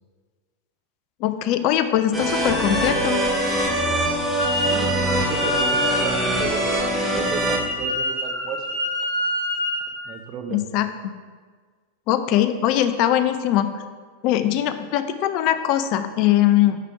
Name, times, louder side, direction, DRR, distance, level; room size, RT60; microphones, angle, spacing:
voice 1, 1.2-3.2 10.5-10.9 12.1-13.7 14.2-16.8, left 12 dB, 40° left, 10 dB, 0.5 m, -21 dB
sound 1, 2.1-7.6, equal, ahead, 1.3 m, -23 dB
sound 2, 2.4-7.4, right 5 dB, 65° right, 1.0 m, -31 dB
Wind instrument woodwind instrument, 4.4-4.8 5.0-9.9, left 1 dB, 65° left, 1.8 m, -27 dB
voice 2, 4.5-8.8 10.1-10.7, right 8 dB, 35° right, 6 dB, 0.7 m, -34 dB
5.9 x 5.7 x 4.8 m, 1.5 s
figure-of-eight pair, 90°, 0 cm